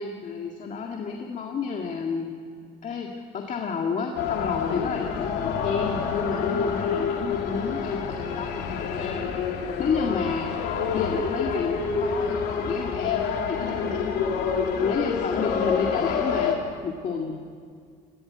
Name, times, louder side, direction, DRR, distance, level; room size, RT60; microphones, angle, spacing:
voice 1, 0.0-2.3 2.8-3.1 3.3-9.4 9.8-14.5 14.8-16.6 16.8-17.4, left 5 dB, 45° left, 1 dB, 2.1 m, -30 dB
sound 1, 4.1-16.5, left 6 dB, 80° left, 2.9 m, -28 dB
21.0 x 15.5 x 9.7 m, 2.1 s
cardioid pair, 110°, 17 cm